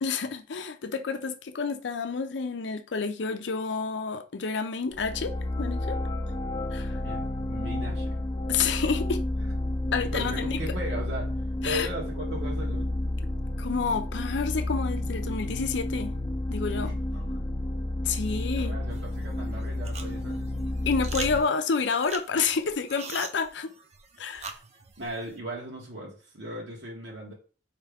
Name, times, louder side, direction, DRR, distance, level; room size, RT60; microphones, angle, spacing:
voice 1, 0.0-6.0 6.7-7.0 8.5-9.2 9.9-10.6 11.6-11.9 13.6-16.1 16.5-16.9 18.0-18.8 20.9-23.7 24.2-24.5, left 5 dB, 80° left, 0.5 m, -29 dB
sound 1, 4.9-21.4, left 1 dB, 25° left, 0.5 m, -31 dB
voice 2, 7.0-8.2 10.1-11.3 11.6-12.9 16.7-17.4 18.6-20.5 25.0-27.3, right 1 dB, 85° right, 1.4 m, -37 dB
sound 2, 18.9-25.4, right 5 dB, 35° right, 0.7 m, -43 dB
4.8 x 3.2 x 3.4 m
head